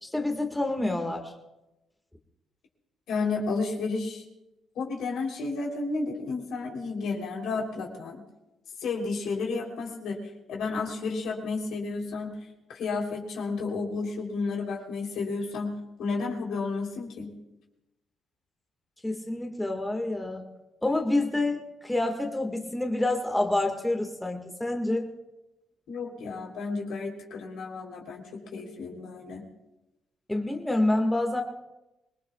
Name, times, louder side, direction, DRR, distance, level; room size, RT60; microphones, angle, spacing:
voice 1, 0.0-1.3 19.0-20.4 20.8-25.1 30.3-31.4, left 2 dB, 10° left, 3 dB, 1.8 m, -27 dB
voice 2, 3.1-4.2 4.8-8.2 8.8-10.2 10.5-12.4 12.7-15.7 16.0-17.4 25.9-29.5, left 4 dB, 80° left, 0 dB, 3.5 m, -32 dB
25.5 x 20.0 x 2.4 m, 0.98 s
cardioid pair, 90°, 0 cm